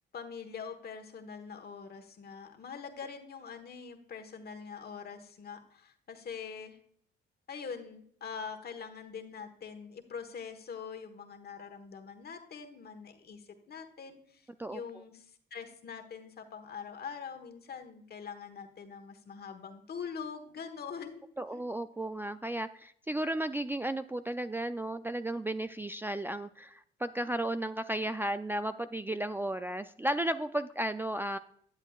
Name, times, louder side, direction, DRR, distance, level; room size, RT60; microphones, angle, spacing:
voice 1, 0.1-6.8 7.5-21.2 21.5-21.6, left 6 dB, 55° left, 6 dB, 1.3 m, -44 dB
voice 2, 21.4-31.4, right 1 dB, 10° right, 8 dB, 0.3 m, -34 dB
10.5 x 8.0 x 2.4 m, 0.65 s
cardioid pair, 90°, 20 cm